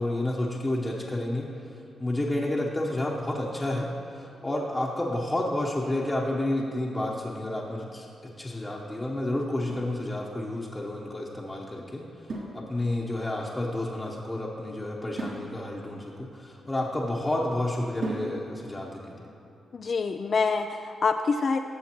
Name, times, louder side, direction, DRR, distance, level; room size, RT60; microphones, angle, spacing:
voice 1, 0.0-1.5 2.0-8.1 8.4-12.0 12.5-19.1, left 1 dB, 20° left, -4 dB, 0.9 m, -30 dB
sound 1, 9.7-10.7 12.3-13.2 15.2-17.2 18.0-18.8, right 2 dB, 75° right, 1.9 m, -38 dB
voice 2, 19.7-21.6, left 4 dB, 55° left, 6 dB, 0.3 m, -26 dB
14.5 x 7.1 x 3.0 m, 2.9 s
cardioid pair, 65°, 0 cm